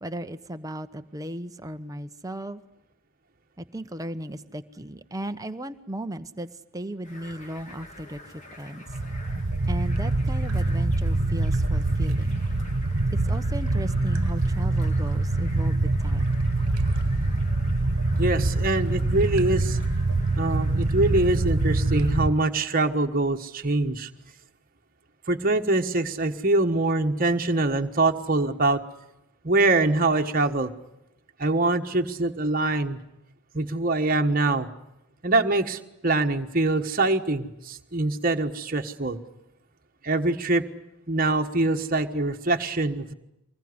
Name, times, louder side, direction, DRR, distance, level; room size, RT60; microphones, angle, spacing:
voice 1, 0.0-2.6 3.6-8.8 9.7-12.4 13.1-16.4, right 1 dB, 15° right, 9 dB, 1.0 m, -36 dB
sound 1, 7.0-22.2, left 1 dB, 35° left, 3.0 m, -47 dB
sound 2, 8.9-22.3, right 2 dB, 85° right, 1.3 m, -24 dB
voice 2, 18.2-19.8 20.4-24.1 25.3-28.8 29.4-30.7 31.4-33.0 33.5-34.7 35.2-39.2 40.0-40.6 41.1-43.1, right 2 dB, 40° right, 4 dB, 1.4 m, -24 dB
24.5 x 21.0 x 9.7 m, 0.86 s
head